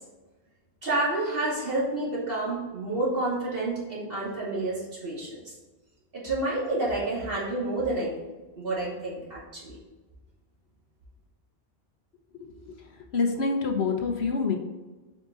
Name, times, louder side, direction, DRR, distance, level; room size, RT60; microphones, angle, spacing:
voice 1, 0.8-5.5 6.1-8.1 8.6-9.8, right 2 dB, 60° right, -7 dB, 2.9 m, -29 dB
voice 2, 12.3-14.6, left 4 dB, 75° left, 4 dB, 1.3 m, -27 dB
8.0 x 5.0 x 3.8 m, 1.2 s
omnidirectional pair, 1.1 m